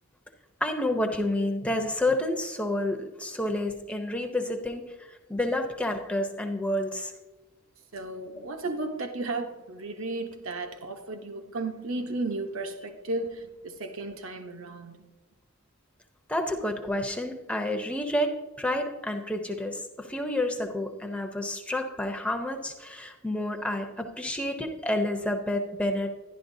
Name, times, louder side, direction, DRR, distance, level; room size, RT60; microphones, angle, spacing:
voice 1, 0.6-7.1 16.3-26.2, left 1 dB, 5° left, 0.6 m, -29 dB
voice 2, 7.9-15.1, right 2 dB, 70° right, 0.9 m, -34 dB
11.5 x 11.0 x 2.7 m
head